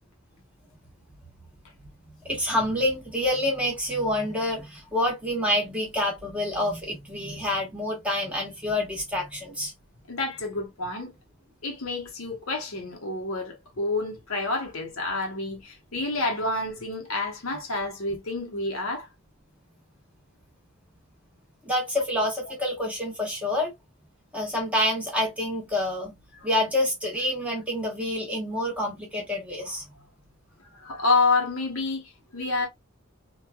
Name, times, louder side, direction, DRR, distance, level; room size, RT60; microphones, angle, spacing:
voice 1, 2.2-9.7 21.6-23.7 24.3-26.1 26.4-29.8, left 1 dB, 5° right, 0.9 m, -27 dB
voice 2, 10.1-11.1 11.6-19.1 30.7-32.7, left 3 dB, 75° left, 0.9 m, -28 dB
3.1 x 2.2 x 2.2 m
head